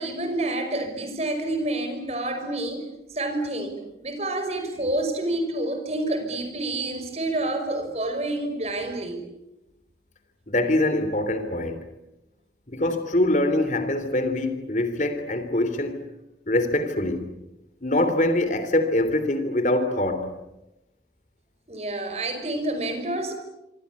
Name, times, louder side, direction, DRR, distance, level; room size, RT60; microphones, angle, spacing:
voice 1, 0.0-2.8 3.1-9.2 21.7-23.3, right 1 dB, 35° right, 5.6 m, -28 dB
voice 2, 10.5-11.8 12.7-16.0 16.5-17.3 17.8-20.3, left 1 dB, 45° left, 3.2 m, -24 dB
26.5 x 26.0 x 8.5 m
head